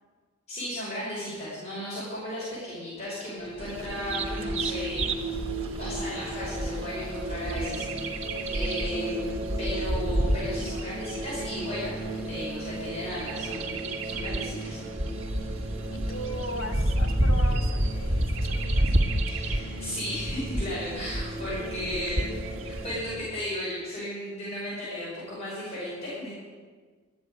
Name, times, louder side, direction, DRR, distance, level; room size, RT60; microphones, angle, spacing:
voice 1, 0.5-5.1 5.8-8.1 8.5-14.8 19.3-26.3, left 1 dB, 30° left, -8 dB, 5.7 m, -35 dB
sound 1, 3.4-23.2, right 2 dB, 25° right, 2.1 m, -36 dB
Bird vocalization bird call bird song, 3.6-23.0, right 1 dB, 65° right, 1.6 m, -30 dB
voice 2, 15.9-18.9 21.4-21.5, left 1 dB, 70° left, 2 dB, 2.4 m, -38 dB
12.5 x 9.8 x 9.6 m, 1.5 s
head